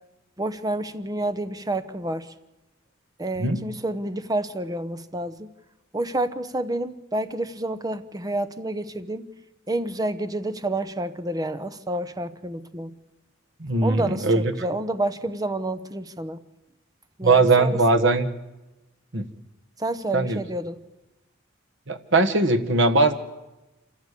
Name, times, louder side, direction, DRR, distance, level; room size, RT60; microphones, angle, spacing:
voice 1, 0.4-2.3 3.2-5.5 5.9-9.3 9.7-13.0 13.8-16.4 17.2-18.2 19.8-20.8, right 1 dB, 20° right, 12 dB, 0.8 m, -29 dB
voice 2, 13.6-14.5 17.2-18.3 19.1-19.2 20.1-20.4 21.9-23.1, right 3 dB, 65° right, 7 dB, 1.5 m, -20 dB
26.5 x 14.0 x 8.4 m, 1.0 s
head